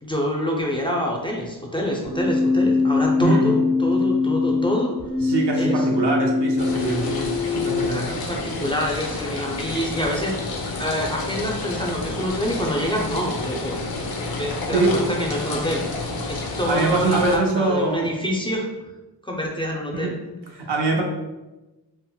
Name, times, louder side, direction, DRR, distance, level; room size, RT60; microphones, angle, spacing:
voice 1, 0.0-4.9 5.6-5.9 7.9-10.3 10.8-13.9 14.4-15.8 16.3-18.7 19.2-20.1, equal, 15° left, -1 dB, 0.4 m, -26 dB
Keyboard (musical), 2.0-8.0, left 4 dB, 50° right, 1.0 m, -22 dB
voice 2, 5.2-8.2 14.7-15.0 16.7-18.1 19.9-20.1 20.5-21.0, right 3 dB, 90° right, 1 dB, 0.6 m, -23 dB
sound 1, 6.6-17.4, left 2 dB, 65° left, 0.5 m, -30 dB
3.6 x 2.1 x 2.2 m, 1.1 s
wide cardioid pair, 85°, 40 cm